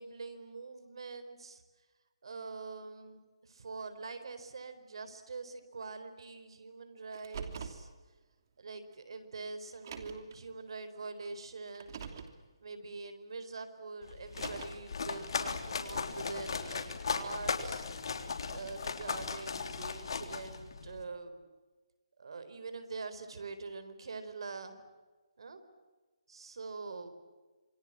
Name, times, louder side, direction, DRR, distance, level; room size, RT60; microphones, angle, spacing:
voice 1, 0.0-1.6 2.2-7.9 8.6-12.1 12.6-17.8 18.5-21.4 22.2-24.8 25.4-25.6 26.3-27.1, right 4 dB, 70° right, 10 dB, 4.4 m, -44 dB
Car, 7.1-7.9 8.9-9.0 9.7-10.3 11.7-12.4 14.2-14.9, right 6 dB, 45° right, 2.9 m, -44 dB
sound 1, 14.0-21.0, left 5 dB, 65° left, 3.4 m, -37 dB
27.5 x 24.0 x 7.6 m, 1.3 s
hypercardioid pair, 165°, 3 cm